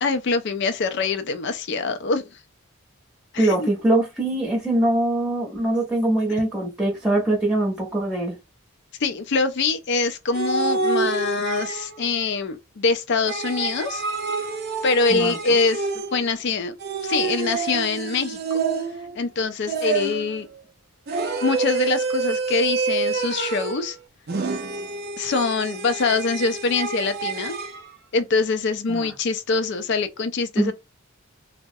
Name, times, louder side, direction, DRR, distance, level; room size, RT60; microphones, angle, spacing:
voice 1, 0.0-2.3 3.3-3.7 9.0-14.0 14.8-16.7 17.0-18.4 19.1-20.5 21.4-24.0 25.2-27.6 28.1-30.7, left 4 dB, 50° left, 0.4 m, -24 dB
voice 2, 3.4-8.4 15.1-15.4 28.9-29.1 30.6-30.7, right 1 dB, 5° right, 0.7 m, -22 dB
sound 1, 10.3-12.1 13.3-16.3 16.8-19.2 19.7-20.4 21.1-23.9 24.3-27.8, right 4 dB, 45° right, 0.4 m, -27 dB
2.3 x 2.0 x 2.6 m
head